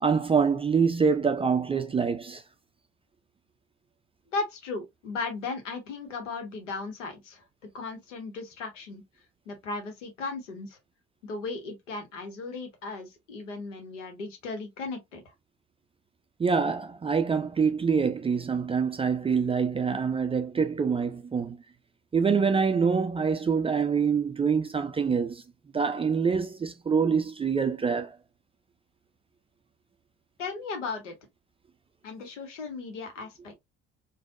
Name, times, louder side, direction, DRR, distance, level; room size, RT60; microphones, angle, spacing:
voice 1, 0.0-2.4 16.4-21.6 22.1-25.4 25.7-28.1, right 5 dB, 15° right, 0.3 m, -25 dB
voice 2, 4.3-7.4 7.7-9.0 9.5-10.8 11.2-15.2 30.4-31.1 32.0-33.5, left 3 dB, 80° left, 0.9 m, -36 dB
3.3 x 2.2 x 2.5 m
figure-of-eight pair, 50°, 36 cm